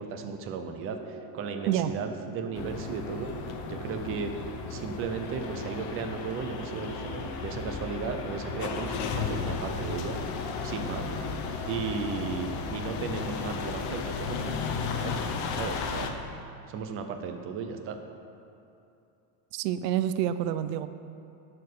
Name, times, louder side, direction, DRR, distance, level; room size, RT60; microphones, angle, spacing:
voice 1, 0.0-3.3 3.7-4.3 4.7-10.2 10.6-11.1 11.7-15.2 15.5-16.1 16.7-18.0, right 5 dB, 30° right, 5 dB, 0.6 m, -35 dB
sound 1, 0.9-12.8, right 4 dB, 60° right, 2.1 m, -44 dB
sound 2, 2.5-16.1, left 5 dB, 40° left, 0.7 m, -34 dB
voice 2, 19.5-20.9, right 11 dB, 90° right, 12 dB, 0.6 m, -28 dB
10.5 x 4.4 x 6.7 m, 2.7 s
supercardioid pair, 145°, 47 cm